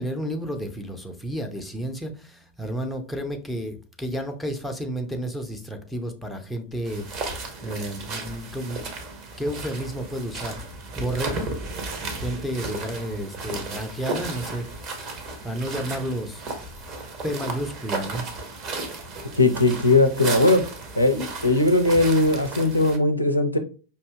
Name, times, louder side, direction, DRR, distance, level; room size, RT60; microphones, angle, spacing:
voice 1, 0.0-7.1 7.6-8.8 9.4-10.6 11.0-11.5 12.0-14.6 15.4-16.4 17.2-18.3, right 1 dB, 5° left, 3 dB, 0.6 m, -31 dB
sound 1, 6.8-23.0, right 3 dB, 35° right, 0.8 m, -34 dB
voice 2, 19.3-20.6 21.0-23.6, left 2 dB, 85° left, 6 dB, 0.4 m, -19 dB
5.3 x 2.7 x 2.3 m, 0.37 s
figure-of-eight pair, 90°, 0 cm